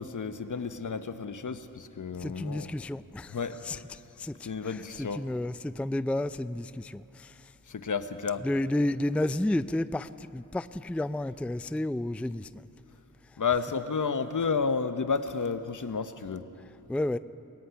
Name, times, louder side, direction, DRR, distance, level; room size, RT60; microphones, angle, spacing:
voice 1, 0.0-2.7 3.3-3.6 4.4-5.2 7.7-8.5 13.4-16.4, left 5 dB, 60° left, 10 dB, 1.0 m, -31 dB
voice 2, 2.2-3.4 3.6-7.3 8.4-12.5 16.9-17.2, left 1 dB, 5° left, 14 dB, 0.4 m, -31 dB
23.5 x 19.5 x 5.8 m, 2.9 s
cardioid pair, 50°, 34 cm